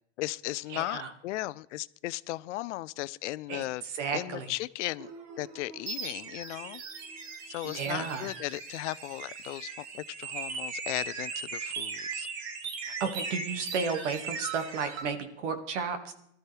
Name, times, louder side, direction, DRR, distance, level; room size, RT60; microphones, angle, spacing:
voice 1, 0.2-3.8 4.1-5.1 5.4-6.8 7.5-12.3, left 18 dB, 80° left, 18 dB, 0.6 m, -36 dB
voice 2, 0.7-1.1 3.5-4.5 7.6-8.3 12.9-16.1, right 5 dB, 80° right, 7 dB, 2.1 m, -33 dB
sound 1, 5.0-15.0, right 5 dB, 50° right, 2.0 m, -39 dB
19.5 x 13.0 x 3.4 m, 0.73 s
supercardioid pair, 120°, 35 cm